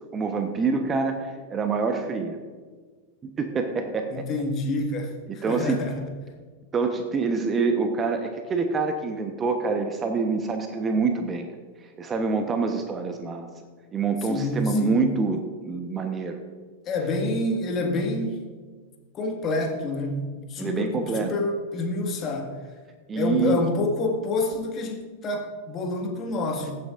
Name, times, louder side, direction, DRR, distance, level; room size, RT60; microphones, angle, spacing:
voice 1, 0.1-2.4 3.2-4.3 5.4-5.8 6.7-11.5 12.0-13.5 13.9-16.4 20.6-21.3 23.1-23.6, right 4 dB, 20° right, 6 dB, 1.0 m, -26 dB
voice 2, 4.1-6.1 14.2-15.0 16.8-18.4 19.1-22.5 23.1-26.7, left 2 dB, 30° left, 2 dB, 1.8 m, -28 dB
22.5 x 8.6 x 2.5 m, 1.5 s
figure-of-eight pair, 90°, 0 cm